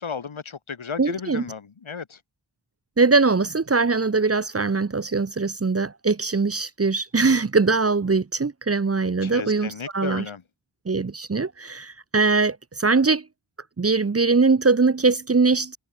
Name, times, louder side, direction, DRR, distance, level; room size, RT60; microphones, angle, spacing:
voice 1, 0.0-2.2 9.2-10.4, left 6 dB, 80° left, 1.9 m, -34 dB
voice 2, 1.0-1.4 3.0-10.3 10.9-13.3 13.8-15.8, right 4 dB, 30° right, 0.7 m, -21 dB
wide cardioid pair, 70°, 47 cm